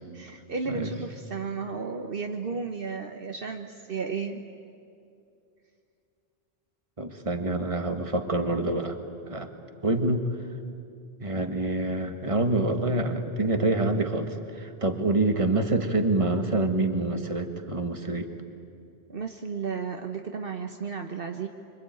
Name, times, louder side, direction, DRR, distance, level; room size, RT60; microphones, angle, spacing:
voice 1, 0.1-4.4 19.1-21.5, right 5 dB, 60° right, 5 dB, 1.2 m, -33 dB
voice 2, 7.0-9.0 9.3-9.5 9.8-10.3 11.2-18.3, right 2 dB, 30° right, 6 dB, 1.7 m, -26 dB
25.0 x 24.5 x 9.2 m, 2.5 s
omnidirectional pair, 1.1 m